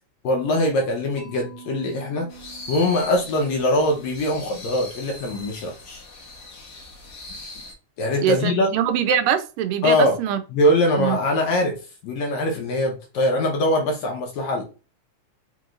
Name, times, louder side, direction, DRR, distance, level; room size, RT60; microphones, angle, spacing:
voice 1, 0.2-2.3 2.7-6.0 8.0-8.7 9.8-10.2 10.5-11.7 12.0-14.6, left 1 dB, 75° left, 1.8 m, -22 dB
Mallet percussion, 1.2-5.2, right 6 dB, 30° left, 0.3 m, -47 dB
sound 1, 2.3-7.7, left 2 dB, 60° left, 1.0 m, -40 dB
voice 2, 8.2-10.4 11.0-11.2, right 9 dB, 90° right, 2.2 m, -23 dB
5.2 x 3.0 x 2.4 m
omnidirectional pair, 3.7 m